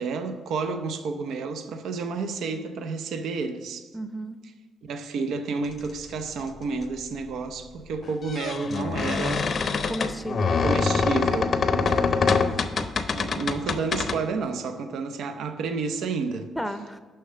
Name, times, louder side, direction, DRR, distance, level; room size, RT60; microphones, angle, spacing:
voice 1, 0.0-3.9 4.8-9.5 10.6-11.5 13.2-16.5, right 4 dB, 75° right, 0.6 m, -30 dB
voice 2, 3.9-4.4 9.9-10.6 11.6-12.3 16.6-17.0, right 1 dB, ahead, 0.6 m, -34 dB
sound 1, 6.4-6.5 8.1-14.2, left 4 dB, 50° left, 0.6 m, -25 dB
6.5 x 5.7 x 6.5 m
cardioid pair, 90°, 0 cm